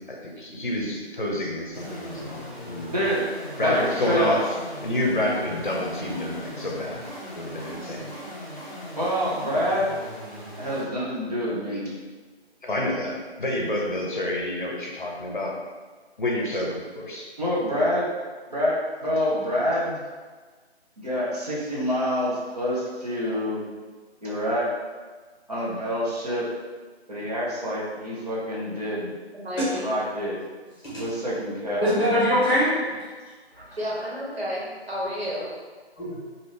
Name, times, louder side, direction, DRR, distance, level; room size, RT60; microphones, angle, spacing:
voice 1, 0.0-3.1 3.6-4.4 4.8-7.0 7.3-8.1 12.6-15.5 16.2-17.3, left 1 dB, 50° left, -1 dB, 0.7 m, -28 dB
sound 1, 1.7-10.8, left 1 dB, 10° right, 1.1 m, -39 dB
voice 2, 3.6-4.4 8.9-10.0 10.6-11.9 17.4-18.1 18.5-20.0 21.0-23.6 24.2-24.7 25.5-26.5 27.1-29.1 29.7-30.4 31.0-31.9, equal, 35° right, -7 dB, 0.8 m, -26 dB
voice 3, 29.3-29.8 33.8-35.5, equal, 65° right, -6 dB, 1.4 m, -31 dB
voice 4, 31.8-32.9 33.5-33.8 36.0-36.2, equal, 20° left, -8 dB, 1.2 m, -23 dB
3.4 x 2.5 x 3.1 m, 1.4 s
figure-of-eight pair, 155°, 33 cm